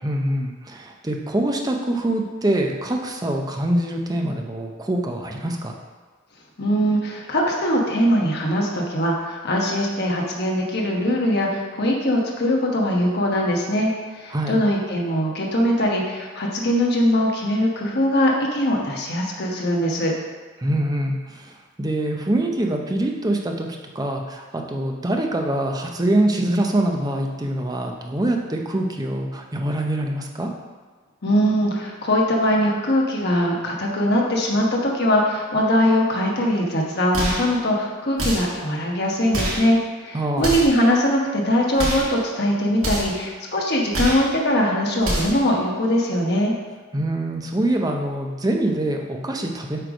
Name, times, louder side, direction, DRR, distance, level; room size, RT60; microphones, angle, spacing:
voice 1, 0.0-5.7 14.3-14.6 20.6-30.5 40.1-40.6 46.9-49.8, right 1 dB, 20° right, 2 dB, 0.6 m, -24 dB
voice 2, 6.6-20.1 31.2-46.5, equal, 50° left, -1 dB, 1.1 m, -21 dB
sound 1, 37.1-37.5 38.2-38.6 39.3-39.7 40.4-40.8 41.7-42.1 42.8-43.2 43.9-44.3 45.0-45.4, right 1 dB, 85° right, 1.9 m, -26 dB
7.6 x 3.3 x 5.1 m, 1.4 s
head